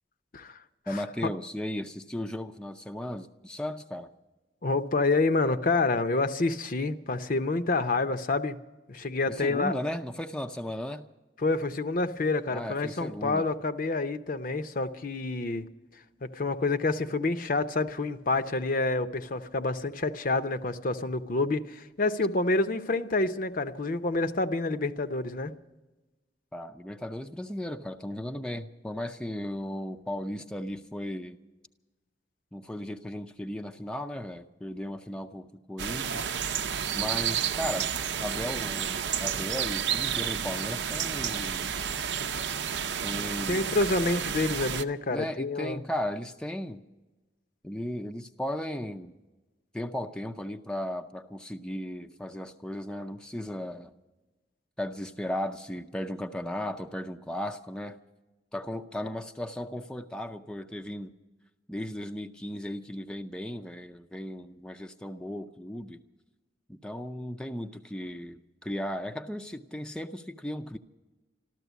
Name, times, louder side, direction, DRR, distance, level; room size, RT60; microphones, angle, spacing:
voice 1, 0.9-4.1 9.3-11.1 12.5-13.5 26.5-31.4 32.5-36.4 36.9-37.9 38.2-41.7 43.0-43.6 45.1-46.8 47.6-49.1 49.7-53.9 54.8-58.0 58.5-61.1 61.7-66.0 66.7-70.8, left 1 dB, 5° left, 4 dB, 0.5 m, -36 dB
voice 2, 4.6-8.6 8.9-9.7 11.4-15.7 16.2-25.5 43.5-45.8, left 3 dB, 50° left, 10 dB, 0.7 m, -28 dB
sound 1, 35.8-44.8, right 8 dB, 85° right, 0.6 m, -31 dB
13.5 x 13.0 x 8.1 m, 1.1 s
head